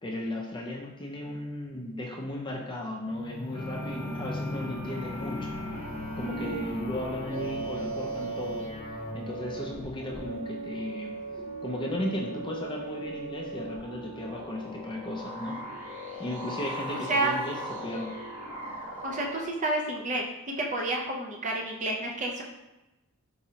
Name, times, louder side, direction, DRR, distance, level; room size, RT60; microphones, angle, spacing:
voice 1, 0.0-5.6 6.2-11.1 11.6-15.6 16.2-18.2, left 1 dB, 25° left, -1 dB, 0.5 m, -35 dB
sound 1, 3.0-13.1 13.8-13.9, left 2 dB, 85° left, 0.7 m, -40 dB
sound 2, 3.5-19.5, right 2 dB, 80° right, 1.2 m, -39 dB
voice 2, 16.9-17.4 19.0-20.2 20.6-22.4, right 2 dB, 35° right, 0 dB, 0.6 m, -29 dB
4.6 x 3.1 x 2.8 m, 1.0 s
head